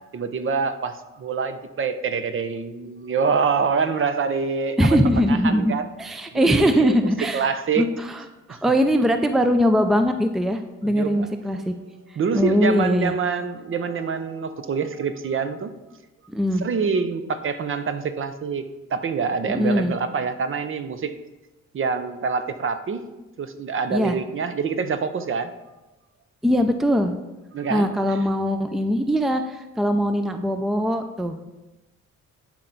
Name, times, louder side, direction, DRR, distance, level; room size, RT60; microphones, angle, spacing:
voice 1, 0.1-5.0 5.3-5.9 6.3-6.9 7.3-7.9 8.5-8.6 10.8-11.3 12.1-15.7 16.6-21.1 21.7-23.0 23.4-25.5 27.5-28.2, right 5 dB, 45° right, 10 dB, 0.7 m, -26 dB
voice 2, 4.8-5.7 6.0-7.5 7.8-7.9 8.5-11.7 12.3-13.2 16.3-16.6 19.5-19.9 23.9-24.2 26.4-27.1 27.7-31.4, equal, ahead, 7 dB, 0.5 m, -21 dB
12.0 x 4.4 x 4.0 m, 1.0 s
cardioid pair, 90°, 30 cm